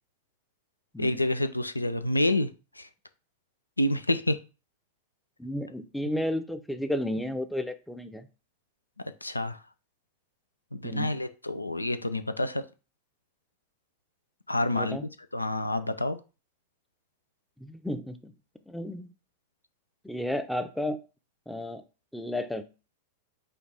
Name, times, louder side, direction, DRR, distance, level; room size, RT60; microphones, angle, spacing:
voice 1, 1.0-2.5 2.8-2.9 3.8-4.4 9.2-9.6 10.7-12.6 14.5-15.0 15.3-16.2, left 1 dB, 85° left, 0.4 m, -28 dB
voice 2, 5.4-8.3 10.8-11.1 14.7-15.1 17.6-18.3 18.7-19.1 20.0-21.0 21.5-21.8 22.1-22.6, left 1 dB, 5° left, 0.5 m, -32 dB
5.1 x 2.4 x 4.3 m
figure-of-eight pair, 90°, 0 cm